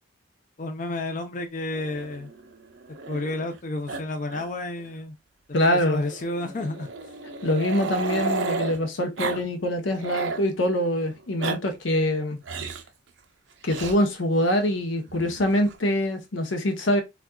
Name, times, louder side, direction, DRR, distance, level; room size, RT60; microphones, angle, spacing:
voice 1, 0.6-2.3 3.1-5.2 5.6-6.9, left 2 dB, 45° left, 0.6 m, -31 dB
Growling, 1.7-3.6 3.9-4.0 4.3-4.5 4.8-4.9 5.9-8.8 9.2-9.4 9.7-10.4 11.2-11.6 12.4-12.9 13.7-14.0 15.1-15.8, right 4 dB, 65° right, 0.5 m, -33 dB
voice 2, 5.5-6.0 7.4-12.4 13.6-17.0, left 1 dB, 80° left, 0.7 m, -24 dB
4.0 x 2.4 x 2.2 m
head